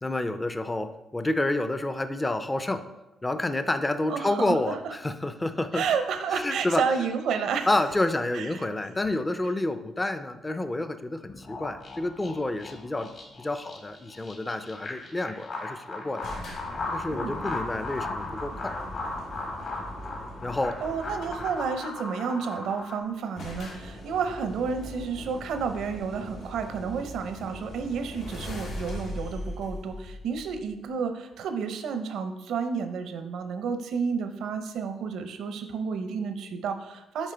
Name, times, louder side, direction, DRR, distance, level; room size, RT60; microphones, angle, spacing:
voice 1, 0.0-2.9 3.2-5.9 6.3-6.9 7.7-16.3 16.9-18.8 20.4-20.8, left 2 dB, 15° left, 10 dB, 0.4 m, -29 dB
voice 2, 4.1-4.8 5.7-7.7 8.3-8.7 17.1-17.4 20.8-37.3, right 6 dB, 75° right, 8 dB, 0.6 m, -31 dB
sound 1, 11.3-23.0, left 2 dB, 55° left, 1.4 m, -37 dB
sound 2, 16.2-21.7 22.7-22.8 23.0-23.1 23.4-30.8, left 1 dB, 90° left, 1.9 m, -40 dB
7.2 x 4.8 x 3.4 m, 1.0 s
cardioid pair, 90°, 0 cm